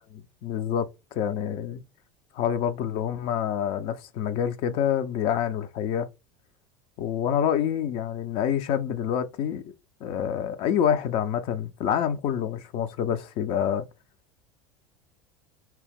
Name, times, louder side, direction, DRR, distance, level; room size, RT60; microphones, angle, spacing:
voice 1, 0.1-1.8 2.3-6.1 7.0-9.7 10.0-13.8, left 9 dB, 55° left, 0.5 m, -27 dB
2.8 x 2.0 x 3.5 m
hypercardioid pair, 80°, 11 cm